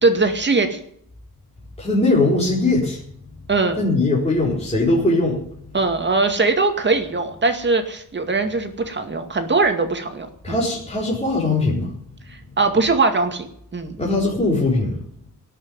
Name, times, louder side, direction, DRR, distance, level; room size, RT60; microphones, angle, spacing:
voice 1, 0.0-0.8 3.5-3.8 5.7-10.6 12.6-14.0, right 3 dB, 30° right, 6 dB, 2.3 m, -21 dB
voice 2, 1.8-3.0 3.8-5.4 10.4-11.9 14.0-15.0, left 2 dB, 15° left, -6 dB, 4.6 m, -20 dB
18.5 x 6.7 x 9.6 m, 0.69 s
wide cardioid pair, 130°, 34 cm